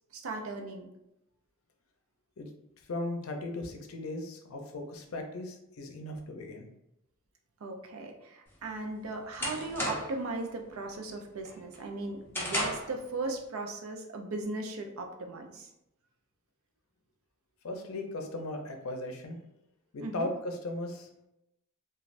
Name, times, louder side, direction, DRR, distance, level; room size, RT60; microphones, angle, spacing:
voice 1, 0.1-0.9 7.6-15.7 20.0-20.3, right 2 dB, 85° right, 3 dB, 0.5 m, -37 dB
voice 2, 2.9-6.7 17.6-19.4 19.9-21.3, left 2 dB, 90° left, 4 dB, 0.5 m, -37 dB
sound 1, 8.5-10.3 10.7-11.1 11.5-13.0, left 1 dB, 10° left, 0.6 m, -35 dB
3.1 x 2.3 x 2.4 m, 0.87 s
head